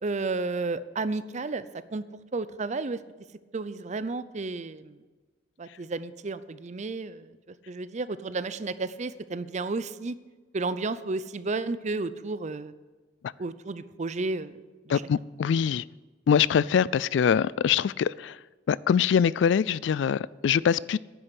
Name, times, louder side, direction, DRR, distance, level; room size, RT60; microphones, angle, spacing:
voice 1, 0.0-1.7 1.9-2.0 2.3-3.0 3.5-5.0 5.6-7.3 7.7-10.1 10.5-12.7 13.4-14.6 14.9-15.0, right 3 dB, 40° right, 0.6 m, -32 dB
voice 2, 14.9-15.8 16.3-18.4 18.7-21.0, left 7 dB, 75° left, 0.3 m, -23 dB
10.0 x 7.7 x 8.3 m
head